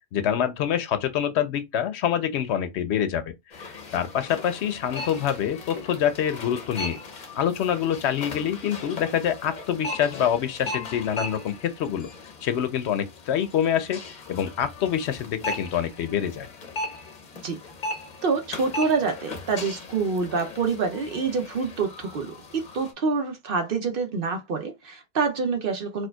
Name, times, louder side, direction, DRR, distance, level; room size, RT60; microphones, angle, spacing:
voice 1, 0.1-12.1 12.4-16.5, left 9 dB, 75° left, 0.8 m, -26 dB
sound 1, 3.5-22.9, left 2 dB, 45° left, 0.7 m, -38 dB
voice 2, 18.2-26.1, right 4 dB, 60° right, 0.8 m, -26 dB
4.3 x 2.3 x 2.2 m
omnidirectional pair, 1.2 m